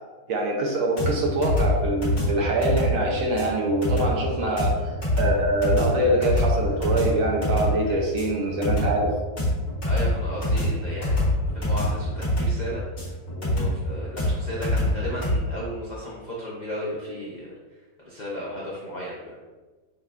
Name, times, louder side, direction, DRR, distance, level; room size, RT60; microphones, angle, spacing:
voice 1, 0.3-4.7 5.2-9.1, right 1 dB, 65° right, 0 dB, 1.0 m, -24 dB
sound 1, 1.0-15.4, left 1 dB, 45° left, 1.7 m, -25 dB
voice 2, 9.8-17.5 18.0-19.4, equal, 70° left, -6 dB, 0.4 m, -35 dB
6.1 x 2.3 x 2.4 m, 1.3 s
omnidirectional pair, 1.7 m